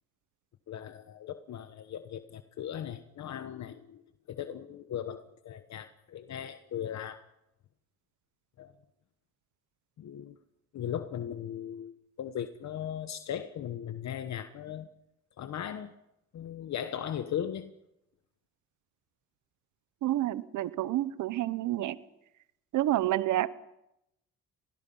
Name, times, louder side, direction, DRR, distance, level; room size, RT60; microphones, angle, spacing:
voice 1, 0.7-7.2 8.6-8.7 10.0-10.4 10.7-14.9 15.4-15.9 16.3-17.7, left 9 dB, 65° left, 9 dB, 1.2 m, -38 dB
voice 2, 20.0-22.0 22.7-23.5, right 14 dB, 80° right, 15 dB, 1.0 m, -29 dB
24.5 x 20.0 x 5.6 m, 0.84 s
cardioid pair, 90°, 30 cm